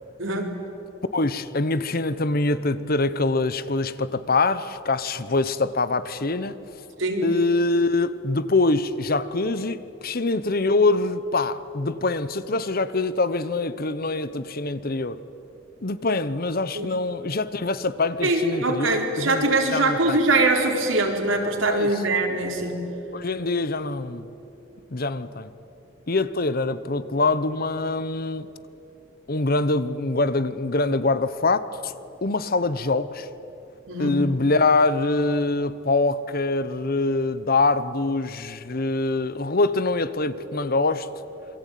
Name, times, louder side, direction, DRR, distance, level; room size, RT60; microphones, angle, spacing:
voice 1, 0.2-0.5 7.0-7.2 16.7-16.9 18.2-22.9 33.9-34.2, right 2 dB, 80° right, 4.3 m, -23 dB
voice 2, 1.1-6.5 7.2-15.2 15.8-20.2 21.7-21.9 23.1-24.3 24.9-25.5 26.1-28.5 29.3-31.9 32.2-33.3 34.0-41.1, left 3 dB, 50° left, 1.0 m, -24 dB
27.5 x 23.0 x 9.3 m
head